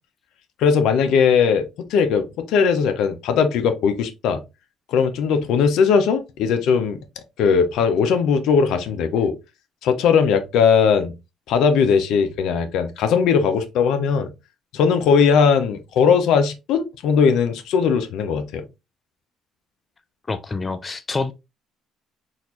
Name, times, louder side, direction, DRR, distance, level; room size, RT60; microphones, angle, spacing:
voice 1, 0.6-4.4 4.9-7.0 7.4-9.3 9.8-11.1 11.5-14.3 14.7-18.6, left 6 dB, 80° left, 0.6 m, -19 dB
voice 2, 20.3-21.3, left 3 dB, 25° left, 0.4 m, -26 dB
4.0 x 2.5 x 2.8 m
cardioid pair, 100°, 0 cm